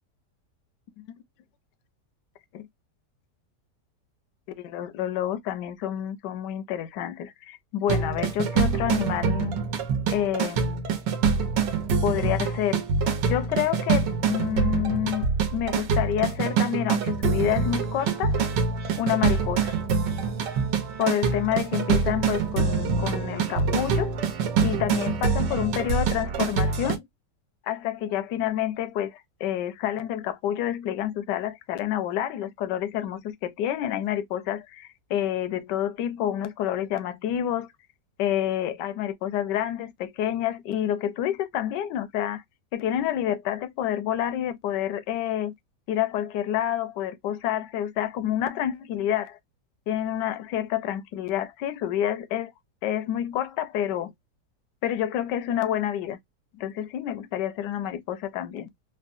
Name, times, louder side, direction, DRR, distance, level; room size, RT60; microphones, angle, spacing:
voice 1, 4.5-9.5 10.1-10.8 12.0-12.9 13.3-15.2 15.5-18.4 18.9-19.7 21.0-24.1 24.6-27.1 27.7-37.7 38.2-42.4 42.7-45.5 45.9-49.4 49.9-52.5 52.8-54.1 54.8-56.2 56.5-58.7, left 11 dB, 80° left, 1.2 m, -28 dB
sound 1, 7.9-27.0, right 5 dB, 85° right, 1.4 m, -25 dB
3.6 x 2.1 x 2.4 m
omnidirectional pair, 1.8 m